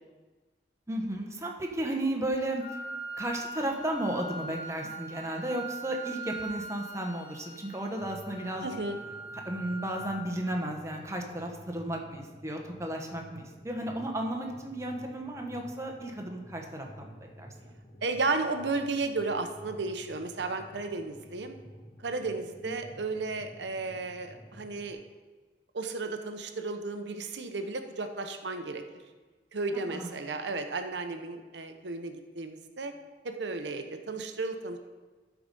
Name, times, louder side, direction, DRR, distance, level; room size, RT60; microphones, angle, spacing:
voice 1, 0.9-2.6 3.2-8.7 9.4-17.5 29.9-30.1, right 1 dB, 15° right, 1 dB, 1.1 m, -34 dB
Wind instrument woodwind instrument, 2.6-10.5, right 2 dB, 75° left, 2.9 m, -42 dB
sound 1, 8.0-24.9, equal, 25° left, 0.9 m, -51 dB
voice 2, 8.6-9.0 18.0-21.6 22.0-25.0 25.7-28.8 29.5-32.9 33.2-34.8, right 3 dB, 85° right, 6 dB, 0.9 m, -33 dB
12.5 x 4.9 x 5.3 m, 1.3 s
head